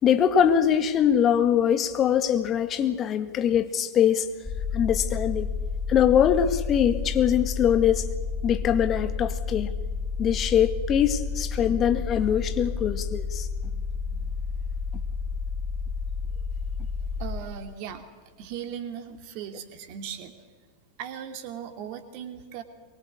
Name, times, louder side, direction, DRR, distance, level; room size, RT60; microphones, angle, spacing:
voice 1, 0.0-4.3 4.7-5.5 5.9-8.1 8.4-9.7 10.2-13.5, left 9 dB, 30° left, 9 dB, 2.0 m, -23 dB
sound 1, 4.4-17.4, left 5 dB, ahead, 3.7 m, -31 dB
voice 2, 17.2-18.1 18.4-20.3 21.0-22.6, right 8 dB, 45° right, 7 dB, 2.7 m, -38 dB
23.0 x 23.0 x 8.5 m, 1.4 s
figure-of-eight pair, 90°, 0 cm